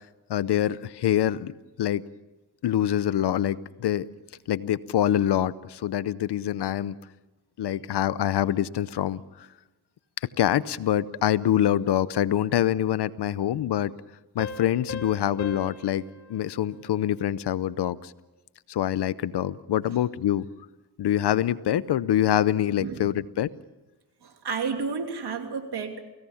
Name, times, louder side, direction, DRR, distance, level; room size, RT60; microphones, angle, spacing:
voice 1, 0.3-1.5 1.8-2.0 2.6-4.1 4.5-7.0 7.6-9.2 10.4-13.9 14.3-16.0 16.3-18.1 18.7-20.5 21.0-23.5, left 11 dB, 85° left, 18 dB, 0.8 m, -25 dB
Piano, 14.4-17.7, left 3 dB, 45° left, 3.4 m, -41 dB
voice 2, 22.8-23.1 24.2-26.0, right 5 dB, 80° right, 5 dB, 2.9 m, -31 dB
29.0 x 17.5 x 7.2 m, 1.1 s
cardioid pair, 50°, 39 cm